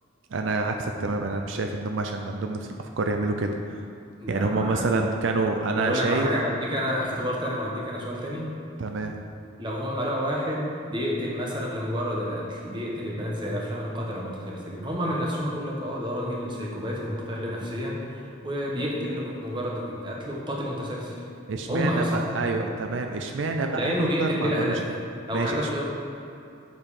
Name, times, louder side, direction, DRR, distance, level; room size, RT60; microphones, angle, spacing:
voice 1, 0.3-3.6 4.3-6.3 8.8-9.2 21.5-24.7 25.3-25.7, right 3 dB, 75° right, 4 dB, 0.5 m, -27 dB
voice 2, 4.2-5.1 5.7-8.5 9.6-21.2 21.7-22.2 22.5-22.7 23.7-24.9 25.3-25.9, equal, 25° right, -3 dB, 1.1 m, -29 dB
7.5 x 5.3 x 4.9 m, 2.6 s
head